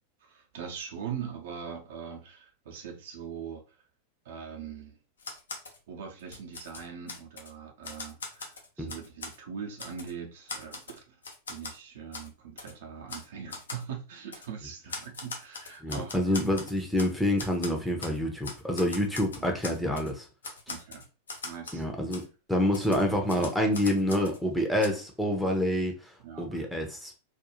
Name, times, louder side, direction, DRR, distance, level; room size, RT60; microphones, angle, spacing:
voice 1, 0.2-3.6 4.2-5.0 5.9-11.1 11.5-16.4 19.4-19.5 20.7-21.0 21.4-21.8 26.2-26.7, right 7 dB, 55° right, 0.6 m, -41 dB
Typewriter, 5.2-5.8 6.2-7.5 7.8-9.4 9.8-10.1 10.5-11.8 12.1-12.3 12.6-12.7 13.1-13.3 13.5-13.8 14.3-14.5 14.9-17.1 17.4-18.2 18.4-20.1 20.4-21.8 22.1-22.2 22.7-24.4 24.8-24.9, left 3 dB, 70° left, 0.5 m, -41 dB
voice 2, 15.8-20.3 21.7-22.2 22.5-25.9 26.4-27.1, left 1 dB, ahead, 0.6 m, -27 dB
2.5 x 2.3 x 2.9 m
figure-of-eight pair, 90°, 0 cm